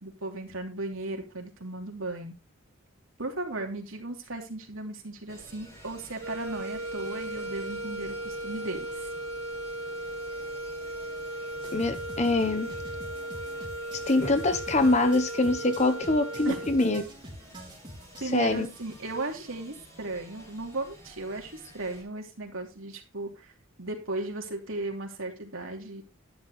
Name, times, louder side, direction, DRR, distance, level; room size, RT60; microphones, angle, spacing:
voice 1, 0.0-2.4 3.2-9.1 16.4-16.6 18.2-23.5 23.8-26.0, right 2 dB, 70° right, 2 dB, 3.0 m, -36 dB
sound 1, 5.3-22.0, equal, 15° left, 7.4 m, -52 dB
sound 2, 6.2-17.1, right 1 dB, 85° right, 1.4 m, -37 dB
sound 3, 11.6-19.2, right 1 dB, 20° right, 3.7 m, -45 dB
voice 2, 11.7-12.7 14.1-17.0 18.3-18.7, left 2 dB, 30° left, 9 dB, 1.1 m, -24 dB
11.0 x 10.5 x 3.2 m, 0.28 s
head